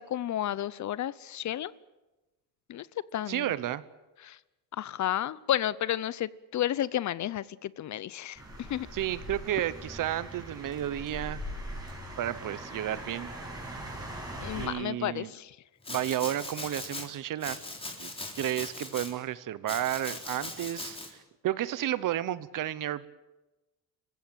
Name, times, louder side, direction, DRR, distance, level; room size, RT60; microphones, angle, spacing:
voice 1, 0.0-1.7 2.7-2.9 3.1-3.5 4.2-4.4 4.8-8.9 14.4-15.6, left 12 dB, 55° left, 20 dB, 0.7 m, -32 dB
voice 2, 3.3-3.8 8.9-11.4 12.2-13.3 14.5-15.3 15.9-17.6 18.0-21.2 21.4-23.1, right 12 dB, 65° right, 16 dB, 1.1 m, -32 dB
sound 1, 8.4-14.7, equal, 10° right, 6.7 m, -41 dB
Domestic sounds home sounds, 15.8-17.1 17.4-19.1 19.7-21.1, left 2 dB, 15° left, 3.8 m, -39 dB
27.0 x 15.5 x 9.0 m, 1.1 s
cardioid pair, 125°, 34 cm